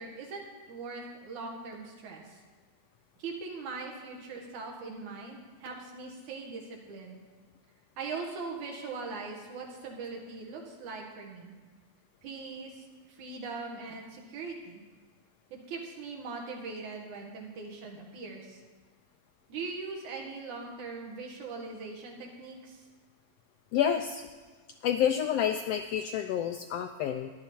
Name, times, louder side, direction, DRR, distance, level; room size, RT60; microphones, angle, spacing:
voice 1, 0.0-2.4 3.2-7.2 8.0-11.5 12.2-14.8 15.5-18.6 19.5-22.8, right 4 dB, 90° right, 0 dB, 3.2 m, -41 dB
voice 2, 23.7-24.2 24.8-27.3, left 9 dB, 85° left, 6 dB, 1.4 m, -29 dB
14.0 x 11.5 x 4.5 m, 1.4 s
omnidirectional pair, 3.3 m